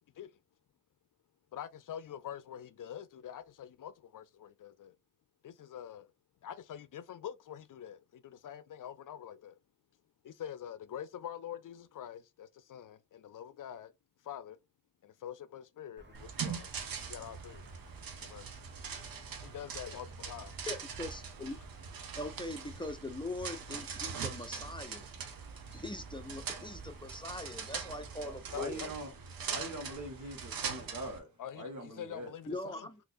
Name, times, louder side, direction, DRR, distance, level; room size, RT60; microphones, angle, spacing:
voice 1, 1.5-4.9 5.4-6.1 6.4-9.6 10.2-13.9 14.2-14.6 15.0-16.7 17.1-17.6 18.2-18.5 19.4-20.6 28.5-28.9 30.2-30.3 31.4-32.9, left 9 dB, 65° left, 0.5 m, -45 dB
Chirp tweet, 16.0-28.1, right 2 dB, 30° right, 1.2 m, -57 dB
sound 1, 16.1-31.2, right 6 dB, 75° right, 0.8 m, -42 dB
voice 2, 20.7-21.6 22.2-25.1 25.7-28.9 32.5-33.0, left 2 dB, 15° left, 0.6 m, -41 dB
voice 3, 28.2-29.1 29.5-31.3 31.5-32.3, right 1 dB, 55° right, 1.5 m, -42 dB
3.8 x 2.9 x 2.6 m
cardioid pair, 50°, 35 cm